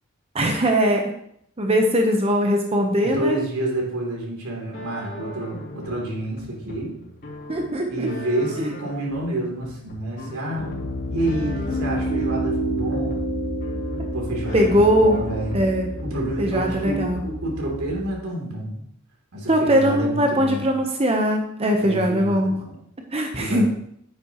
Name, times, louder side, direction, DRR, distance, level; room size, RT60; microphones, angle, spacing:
voice 1, 0.3-1.1 1.6-3.4 7.5-8.1 8.6-8.7 14.5-15.2 15.5-15.9 16.4-17.2 19.5-22.6 23.1-23.7, equal, 30° right, 3 dB, 0.9 m, -20 dB
voice 2, 3.0-7.0 7.9-10.7 11.1-13.2 14.1-15.6 16.0-18.8 19.3-20.7 21.8-22.8 23.4-23.7, right 1 dB, 90° right, -2 dB, 3.1 m, -28 dB
sound 1, 4.7-17.6, equal, 45° left, 3.6 m, -40 dB
Piano, 10.6-18.1, right 1 dB, 75° left, 2.7 m, -29 dB
9.6 x 9.3 x 3.0 m, 0.70 s
head